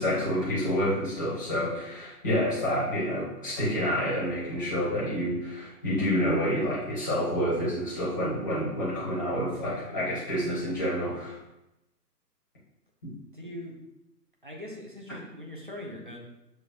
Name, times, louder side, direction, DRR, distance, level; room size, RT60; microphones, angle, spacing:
voice 1, 0.0-11.4 13.0-13.1, equal, 10° left, -8 dB, 0.8 m, -28 dB
voice 2, 13.3-13.7 14.4-16.2, left 1 dB, 35° right, 0 dB, 0.4 m, -41 dB
6.3 x 3.1 x 2.4 m, 0.90 s
figure-of-eight pair, 140°, 50 cm